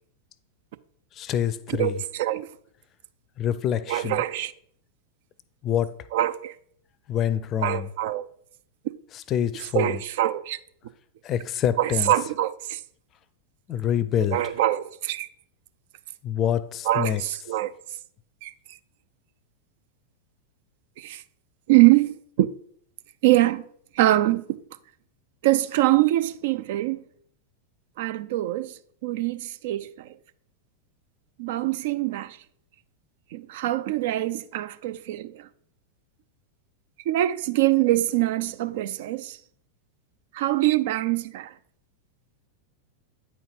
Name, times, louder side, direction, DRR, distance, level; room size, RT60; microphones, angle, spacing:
voice 1, 1.1-2.0 3.4-4.2 5.6-6.0 7.1-7.9 9.1-10.0 11.2-12.1 13.7-14.4 16.2-17.2, left 9 dB, 30° left, 0.5 m, -26 dB
voice 2, 1.8-2.5 3.9-4.5 6.1-6.5 7.6-8.3 9.7-10.6 11.8-12.8 14.3-15.3 16.9-17.7 18.4-18.5 21.0-21.2 21.7-22.5 23.2-23.7 24.0-24.6 25.4-27.0 28.0-28.7 29.0-30.1 31.4-32.4 33.3-35.5 37.1-39.4 40.3-41.5, right 15 dB, 55° right, 0.4 m, -24 dB
8.8 x 4.5 x 5.0 m
figure-of-eight pair, 90°, 0 cm